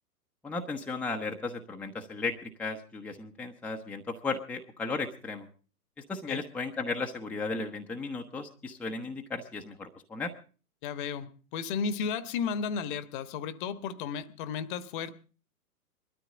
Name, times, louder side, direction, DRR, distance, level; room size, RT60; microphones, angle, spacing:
voice 1, 0.4-5.5 6.1-10.3, left 3 dB, 5° left, 2 dB, 0.9 m, -35 dB
voice 2, 10.8-15.1, left 6 dB, 35° left, 15 dB, 1.3 m, -34 dB
21.5 x 13.0 x 3.8 m, 0.38 s
figure-of-eight pair, 120°, 47 cm